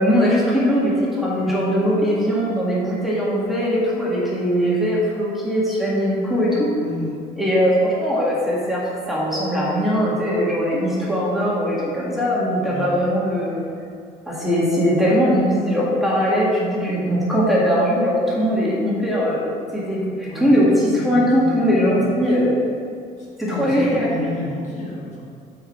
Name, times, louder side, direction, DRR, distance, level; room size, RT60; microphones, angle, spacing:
voice 1, 0.0-6.7 7.4-13.6 14.3-22.6 23.4-24.3, equal, ahead, -7 dB, 1.7 m, -20 dB
voice 2, 6.8-7.2 12.6-13.0 20.2-20.5 20.9-22.5 23.2-25.2, left 1 dB, 45° left, -4 dB, 1.5 m, -32 dB
5.6 x 4.7 x 5.5 m, 2.4 s
cardioid pair, 110°, 17 cm